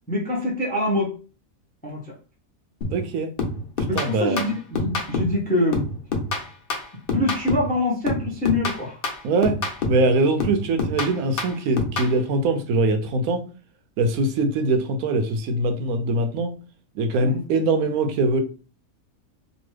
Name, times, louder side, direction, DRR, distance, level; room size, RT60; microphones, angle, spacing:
voice 1, 0.1-1.2 1.8-2.1 3.8-5.9 7.1-9.0 17.2-17.4, left 2 dB, 10° left, 0.4 m, -25 dB
sound 1, 2.8-3.1 3.4-5.4 5.7-7.8 8.1-10.1 10.4-12.1, left 2 dB, 55° left, 0.7 m, -27 dB
voice 2, 2.9-3.3 3.9-4.4 9.2-9.6 9.8-13.4 14.0-16.5 16.9-18.4, right 2 dB, 85° right, 1.0 m, -22 dB
2.9 x 2.2 x 3.2 m
omnidirectional pair, 1.5 m